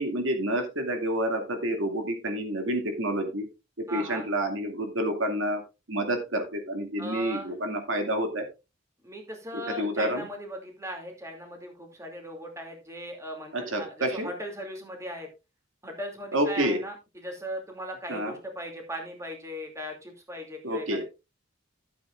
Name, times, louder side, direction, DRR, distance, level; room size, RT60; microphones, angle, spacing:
voice 1, 0.0-3.5 3.8-5.6 5.9-8.5 9.7-10.3 13.5-14.3 16.3-16.8 18.1-18.3 20.6-21.0, right 1 dB, 90° right, 4 dB, 2.4 m, -28 dB
voice 2, 3.9-4.3 7.0-7.5 9.0-15.3 15.8-21.0, equal, 15° right, 2 dB, 2.6 m, -38 dB
14.0 x 8.3 x 2.5 m, 0.27 s
head